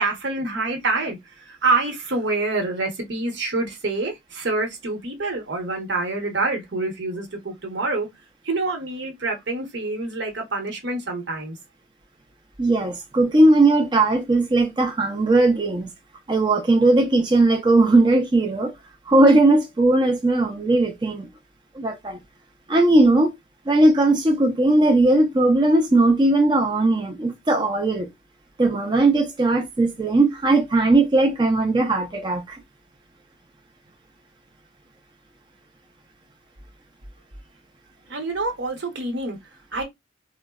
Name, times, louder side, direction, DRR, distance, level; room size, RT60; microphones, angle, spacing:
voice 1, 0.0-8.1 8.4-11.6 38.1-39.4 39.7-39.8, right 3 dB, 80° right, 0.9 m, -26 dB
voice 2, 12.6-15.9 16.3-18.7 19.1-21.3 21.7-22.2 22.7-23.3 23.7-28.1 28.6-32.6, right 2 dB, 25° right, 0.4 m, -18 dB
3.6 x 2.0 x 2.3 m
head